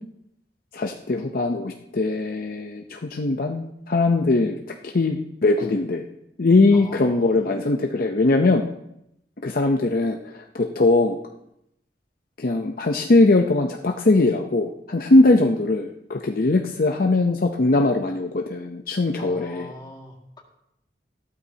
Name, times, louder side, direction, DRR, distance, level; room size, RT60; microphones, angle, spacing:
voice 1, 0.7-4.6 4.8-6.0 6.4-8.6 9.4-11.2 12.4-19.7, left 2 dB, 55° left, 3 dB, 0.7 m, -21 dB
voice 2, 6.7-7.4 19.2-20.4, left 1 dB, 25° left, -1 dB, 2.1 m, -41 dB
15.0 x 12.5 x 2.8 m, 0.81 s
head